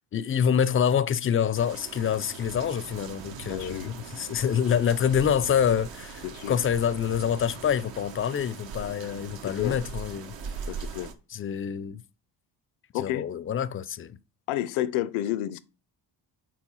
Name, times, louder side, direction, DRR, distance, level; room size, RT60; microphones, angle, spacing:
voice 1, 0.1-10.4 11.3-12.0 12.9-14.2, left 8 dB, 30° left, 0.4 m, -26 dB
sound 1, 1.5-11.1, right 5 dB, 65° right, 1.0 m, -40 dB
voice 2, 3.5-3.9 6.2-6.6 9.6-9.8 10.7-11.1 12.9-13.3 14.5-15.6, left 13 dB, 90° left, 0.6 m, -30 dB
4.6 x 4.3 x 5.5 m
cardioid pair, 75°, 47 cm